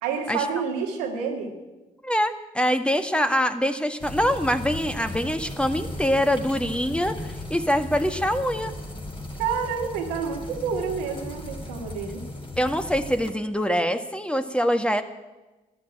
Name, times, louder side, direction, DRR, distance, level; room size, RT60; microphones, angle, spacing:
voice 1, 0.0-1.5 9.4-12.2, right 6 dB, 85° right, 2 dB, 2.0 m, -29 dB
voice 2, 2.0-8.7 12.6-15.0, equal, 5° left, 8 dB, 1.5 m, -24 dB
sound 1, 4.0-13.3, left 1 dB, 25° left, 3.5 m, -36 dB
13.5 x 11.0 x 9.0 m, 1.1 s
hypercardioid pair, 45°, 19 cm